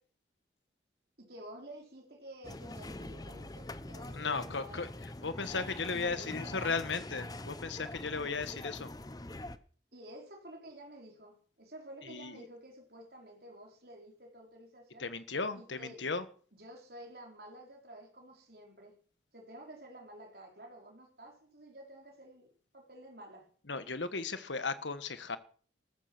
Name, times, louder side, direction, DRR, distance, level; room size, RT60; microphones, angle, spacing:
voice 1, 1.2-4.9 5.9-7.0 9.9-15.1 15.5-16.1 16.5-18.9 19.3-22.5 22.7-23.5, right 1 dB, 55° right, 4.2 m, -51 dB
sound 1, 2.4-9.6, left 1 dB, 20° left, 0.8 m, -44 dB
voice 2, 4.1-4.9 5.2-8.9 12.0-12.4 15.0-16.2 23.7-25.4, left 4 dB, 85° left, 1.5 m, -36 dB
15.0 x 13.5 x 6.1 m
head